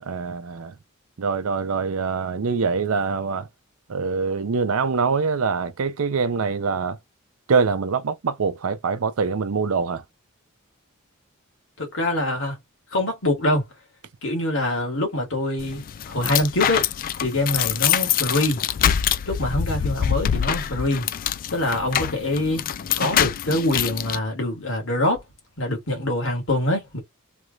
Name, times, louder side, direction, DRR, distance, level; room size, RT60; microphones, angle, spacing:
voice 1, 0.0-0.7 1.2-3.5 3.9-7.0 7.5-10.0, right 5 dB, 70° right, 0.6 m, -24 dB
voice 2, 11.8-12.6 12.9-13.7 14.2-16.9 17.2-18.6 19.3-21.1 21.5-22.6 23.0-25.2 25.6-27.0, left 1 dB, 60° left, 1.9 m, -24 dB
sound 1, 15.6-24.2, left 9 dB, 40° left, 0.3 m, -25 dB
3.3 x 3.1 x 2.3 m
head